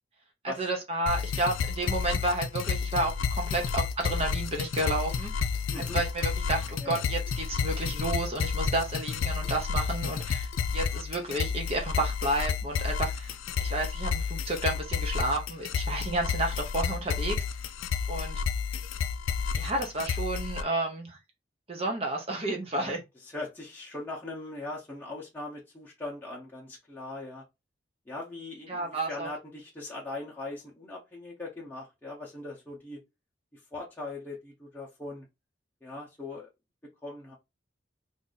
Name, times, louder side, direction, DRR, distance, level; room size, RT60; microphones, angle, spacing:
voice 1, 0.4-5.5 5.9-17.4 18.1-18.4 19.5-21.2 21.7-23.0 28.7-29.3, right 2 dB, 30° right, 0.6 m, -31 dB
sound 1, 1.1-20.6, left 6 dB, 85° left, 0.4 m, -31 dB
voice 2, 5.7-6.0 6.8-7.0 22.7-23.0 23.3-27.4 28.1-33.0 33.7-35.2 35.8-36.5 37.0-37.4, left 2 dB, 10° left, 0.8 m, -40 dB
2.7 x 2.5 x 3.8 m
head